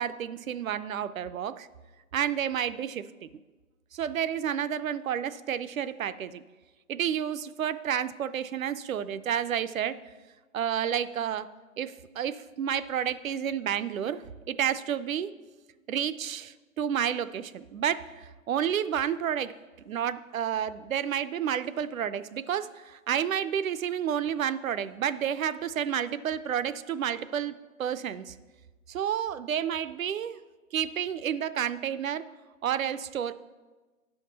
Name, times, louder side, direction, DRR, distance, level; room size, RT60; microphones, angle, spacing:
voice 1, 0.0-1.7 2.1-3.3 3.9-6.4 6.9-10.0 10.5-11.5 11.8-15.3 15.9-19.5 19.9-28.3 28.9-30.4 30.7-32.2 32.6-33.3, right 9 dB, 70° right, 14 dB, 0.5 m, -30 dB
10.0 x 5.8 x 4.1 m, 1.3 s
hypercardioid pair, 150°, 43 cm